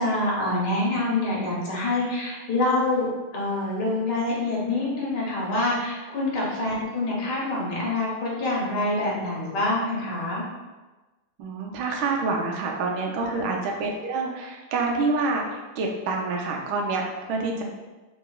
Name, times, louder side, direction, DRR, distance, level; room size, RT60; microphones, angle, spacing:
voice 1, 0.0-10.4 13.2-13.5 17.6-17.7, left 2 dB, 60° left, -5 dB, 1.5 m, -26 dB
voice 2, 11.4-17.6, right 3 dB, 85° right, 0 dB, 1.4 m, -27 dB
3.5 x 2.9 x 2.3 m, 1.2 s
omnidirectional pair, 2.2 m